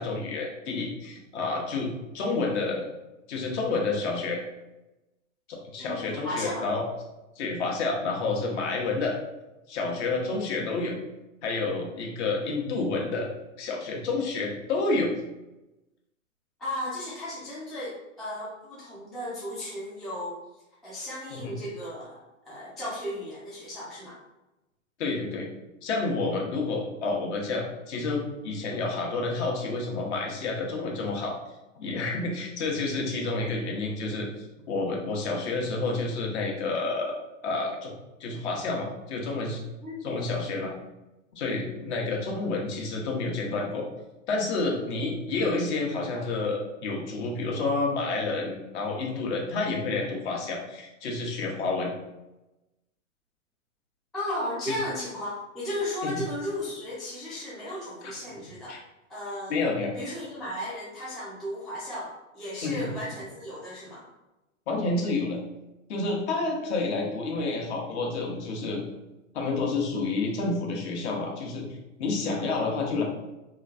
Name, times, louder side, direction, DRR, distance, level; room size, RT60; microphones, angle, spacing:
voice 1, 0.0-2.9 3.3-4.4 5.5-6.9 7.4-9.2 9.7-11.0 11.4-13.3 13.6-15.1 21.3-21.6 25.0-25.5 25.8-31.3 31.8-37.9 38.2-39.6 40.0-40.7 41.3-43.9 44.3-51.9 54.7-54.8 56.0-56.2 58.0-58.4 58.7-58.8 59.5-59.9 62.6-62.9 64.7-65.4 65.9-68.8 69.3-71.6 72.0-73.0, left 3 dB, 55° left, 0 dB, 0.9 m, -29 dB
voice 2, 5.8-6.7 16.6-20.4 20.8-22.2 22.4-24.2 39.8-40.3 54.1-58.7 59.1-59.6 59.9-64.0, left 1 dB, ahead, -9 dB, 0.3 m, -35 dB
3.0 x 2.2 x 2.4 m, 0.99 s
hypercardioid pair, 110°, 40 cm